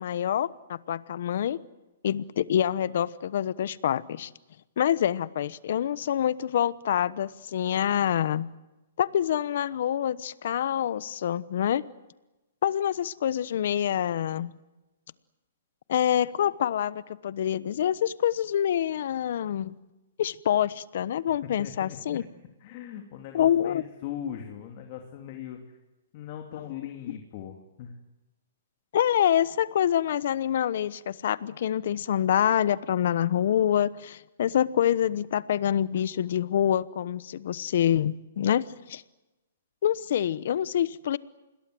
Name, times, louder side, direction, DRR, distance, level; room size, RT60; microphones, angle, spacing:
voice 1, 0.0-1.6 2.0-4.3 4.8-8.5 9.0-11.8 12.6-14.5 15.9-19.8 20.2-22.2 23.3-23.8 28.9-39.0 39.8-41.2, left 10 dB, 60° left, 18 dB, 1.0 m, -26 dB
voice 2, 21.4-22.2 22.6-25.8 26.1-27.9, left 9 dB, 45° left, 4 dB, 2.7 m, -40 dB
28.0 x 21.5 x 7.9 m, 1.0 s
hypercardioid pair, 145°, 0 cm